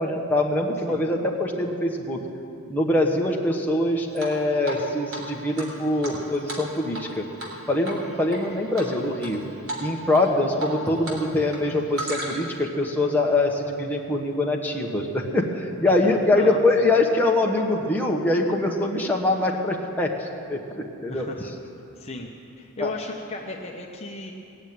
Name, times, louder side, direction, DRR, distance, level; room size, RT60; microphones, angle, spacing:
voice 1, 0.0-2.2 2.7-7.2 7.7-9.4 9.8-21.3 22.8-22.9, left 2 dB, 10° left, -1 dB, 1.1 m, -23 dB
Drip, 4.2-4.8 5.1-5.2 5.6-7.1 7.4-7.6 7.8-8.4 8.8-9.3 9.7-9.8 10.1-11.2 11.5-12.6, right 1 dB, 70° right, 3.3 m, -34 dB
voice 2, 15.8-16.9 21.1-21.5 22.0-22.3 22.6-24.3, left 2 dB, 30° left, 0 dB, 0.9 m, -36 dB
18.0 x 7.2 x 9.3 m, 2.8 s
head